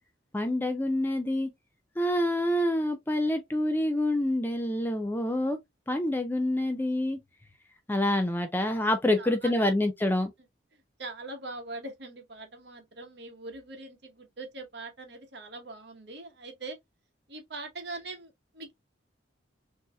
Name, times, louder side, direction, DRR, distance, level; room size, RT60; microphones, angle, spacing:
voice 1, 0.3-1.5 2.0-5.6 5.9-7.2 7.9-10.3, left 1 dB, 10° left, 0.4 m, -27 dB
voice 2, 9.2-9.7 10.7-16.8 17.3-18.7, right 2 dB, 60° right, 1.0 m, -42 dB
3.8 x 2.7 x 2.3 m
head